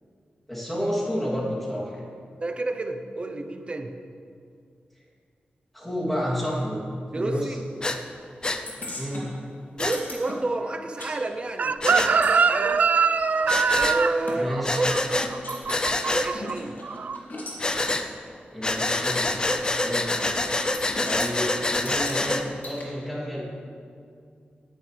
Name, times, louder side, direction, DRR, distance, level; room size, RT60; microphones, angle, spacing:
voice 1, 0.5-2.0 5.7-6.8 7.1-7.6 8.9-9.3 14.3-14.8 18.5-19.3 19.8-20.1 21.0-23.4, equal, 5° left, -7 dB, 3.1 m, -30 dB
voice 2, 2.4-3.9 7.1-7.5 9.8-12.9 13.7-15.4 16.1-16.8, right 2 dB, 30° right, 5 dB, 0.8 m, -30 dB
Breathing, 7.8-8.0 8.4-8.6 9.8-10.0 11.8-12.1 13.5-14.0 14.6-15.3 15.7-16.3 17.6-18.0 18.6-22.4, left 2 dB, 25° left, 0.6 m, -26 dB
sound 1, 8.7-11.1 11.4-14.4 14.8-14.9 15.2-15.9 16.3-17.6 17.9-18.0 18.8-18.9 20.2-20.5 20.7-21.3 21.8-22.8, left 2 dB, 60° left, 2.8 m, -39 dB
Chicken rooster, 11.6-16.5 16.8-17.2, right 5 dB, 50° right, 0.3 m, -23 dB
18.5 x 11.0 x 3.4 m, 2.4 s
wide cardioid pair, 150°, 3 cm